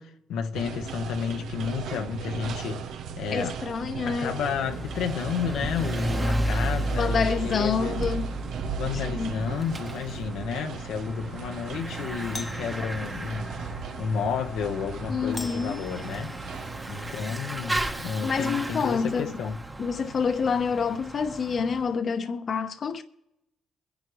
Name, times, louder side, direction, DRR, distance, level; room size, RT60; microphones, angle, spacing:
voice 1, 0.0-3.6 4.0-8.0 8.8-13.6 14.0-16.4 16.9-19.6, left 7 dB, 85° left, 1.1 m, -31 dB
sound 1, 0.5-17.1, right 7 dB, 80° right, 0.8 m, -38 dB
voice 2, 3.3-4.3 7.0-8.3 9.1-9.4 15.1-15.8 18.2-19.3 19.8-23.0, left 5 dB, 50° left, 0.9 m, -27 dB
Bicycle / Mechanisms, 4.3-21.9, right 1 dB, 15° right, 1.1 m, -34 dB
Doorbell, 9.2-9.7 12.2-12.8 15.3-16.5, left 2 dB, 20° left, 0.7 m, -42 dB
23.5 x 10.5 x 3.1 m
cardioid pair, 90°, 0 cm